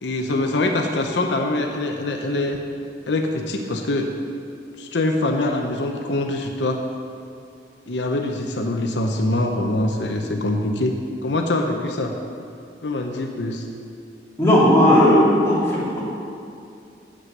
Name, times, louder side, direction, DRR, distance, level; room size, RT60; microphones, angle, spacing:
voice 1, 0.0-2.6 3.1-4.1 4.8-6.8 7.9-10.9 11.2-12.1 12.8-13.7, left 2 dB, 85° left, 3 dB, 0.8 m, -24 dB
voice 2, 14.4-16.0, left 1 dB, 15° left, -8 dB, 2.6 m, -16 dB
8.6 x 7.7 x 6.7 m, 2.5 s
head